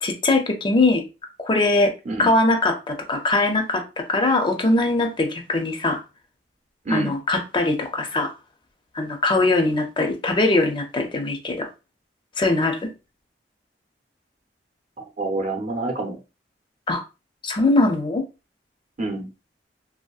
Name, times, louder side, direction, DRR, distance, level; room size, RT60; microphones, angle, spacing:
voice 1, 0.0-1.0 1.4-1.9 2.2-6.0 6.9-8.3 8.9-11.7 12.4-12.9 16.9-17.0 17.4-18.2, left 2 dB, 30° left, 5 dB, 0.4 m, -21 dB
voice 2, 15.0-16.2 19.0-19.3, right 2 dB, 45° right, 3 dB, 0.7 m, -27 dB
2.7 x 2.6 x 2.3 m, 0.29 s
head